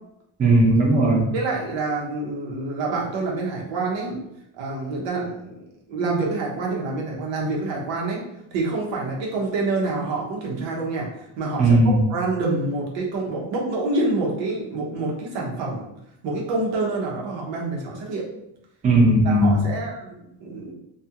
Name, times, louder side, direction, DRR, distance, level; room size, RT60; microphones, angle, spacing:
voice 1, 0.4-1.3 11.6-12.0 18.8-19.6, right 1 dB, 20° right, -2 dB, 0.4 m, -17 dB
voice 2, 1.3-4.2 4.6-5.5 5.9-8.2 8.5-11.1 11.4-15.9 16.2-18.2 19.2-20.7, right 3 dB, 85° right, -2 dB, 0.9 m, -27 dB
2.4 x 2.4 x 2.7 m, 0.80 s
cardioid pair, 155°, 44 cm